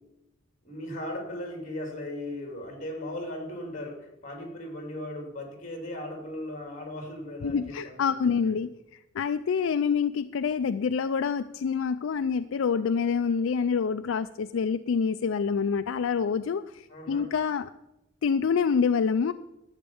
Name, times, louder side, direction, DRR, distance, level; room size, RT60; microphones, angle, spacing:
voice 1, 0.6-8.5 16.9-17.3, left 1 dB, 35° left, 3 dB, 2.8 m, -37 dB
voice 2, 7.4-8.7 9.1-17.7 18.2-19.3, left 6 dB, 70° left, 11 dB, 0.4 m, -26 dB
12.0 x 8.1 x 7.0 m, 0.92 s
head